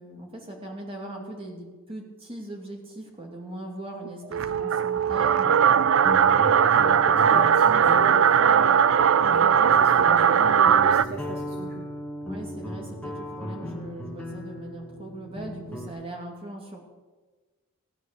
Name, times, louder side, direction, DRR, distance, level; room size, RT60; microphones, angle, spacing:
voice 1, 0.0-5.8 12.2-16.8, right 1 dB, 25° right, 0 dB, 2.6 m, -40 dB
sound 1, 4.3-11.0, right 8 dB, 60° right, 0.4 m, -19 dB
sound 2, 5.4-15.9, left 1 dB, 5° left, 1.7 m, -37 dB
voice 2, 6.5-11.9, right 2 dB, 45° right, 4 dB, 0.9 m, -37 dB
16.5 x 9.0 x 6.8 m, 1.3 s
head